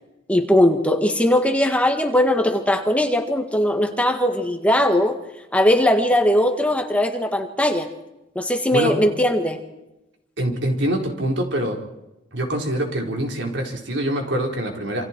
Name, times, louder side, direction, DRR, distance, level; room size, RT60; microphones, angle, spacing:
voice 1, 0.3-5.2 5.5-7.9 8.3-9.6, left 1 dB, 5° left, 5 dB, 1.7 m, -19 dB
voice 2, 10.4-11.8 12.3-15.0, right 1 dB, 70° right, 1 dB, 4.5 m, -24 dB
28.0 x 26.5 x 4.6 m, 0.94 s
head